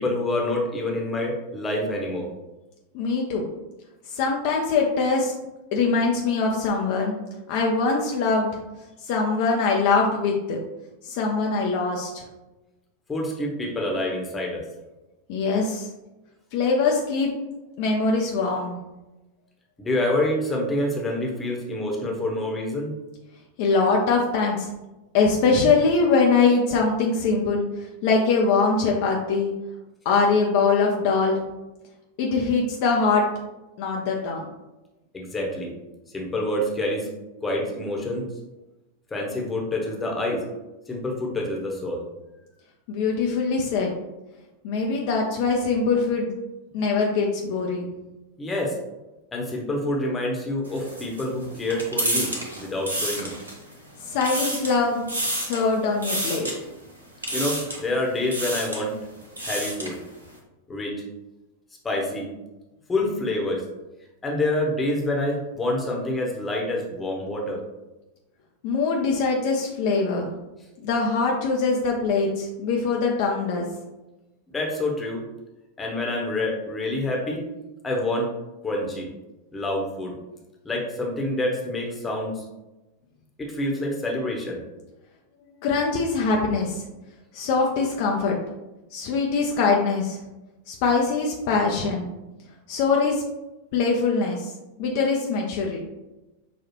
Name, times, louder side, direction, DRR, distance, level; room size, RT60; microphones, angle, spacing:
voice 1, 0.0-2.3 13.1-14.6 19.8-22.9 35.1-35.7 36.1-37.1 37.4-38.2 39.1-40.4 40.9-42.1 48.4-48.7 49.3-52.3 52.6-53.3 57.3-59.0 59.4-60.0 60.7-61.0 61.8-62.3 62.9-63.6 64.2-67.6 74.5-75.2 75.8-77.4 77.8-78.3 78.6-79.1 79.5-80.1 80.6-82.4 83.4-84.6, left 1 dB, 15° left, -1 dB, 1.0 m, -27 dB
voice 2, 2.9-3.4 4.1-5.3 5.7-7.2 7.5-8.5 9.0-10.6 11.0-12.2 15.3-15.9 16.5-17.3 17.8-18.8 23.6-24.7 25.1-29.5 30.0-31.4 32.2-33.2 33.8-34.5 42.9-43.9 44.6-46.3 46.7-47.9 54.1-55.0 55.3-56.5 68.6-70.3 70.8-73.7 85.6-86.8 87.3-88.3 88.9-90.2 90.7-92.1 92.7-93.2 93.7-94.5 94.8-95.8, left 4 dB, 45° left, -1 dB, 0.5 m, -22 dB
sound 1, 50.6-53.7 54.1-54.8 55.1-55.6 56.0-56.5 57.2-57.9 58.2-58.8 59.2-60.0, right 1 dB, 75° right, 0.9 m, -29 dB
6.0 x 2.3 x 3.0 m, 1.0 s
figure-of-eight pair, 90°, 0 cm